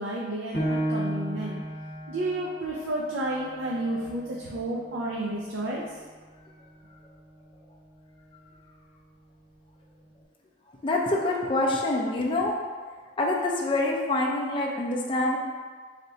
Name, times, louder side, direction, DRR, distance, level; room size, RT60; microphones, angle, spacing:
voice 1, 0.0-1.6 2.1-6.0, right 1 dB, 90° right, -3 dB, 0.5 m, -31 dB
Piano, 0.5-5.7 6.2-6.3 6.9-7.4, right 1 dB, 50° left, 1.0 m, -34 dB
voice 2, 10.8-12.5 13.2-15.4, left 2 dB, 25° left, -2 dB, 0.4 m, -26 dB
4.0 x 3.3 x 2.7 m, 1.5 s
head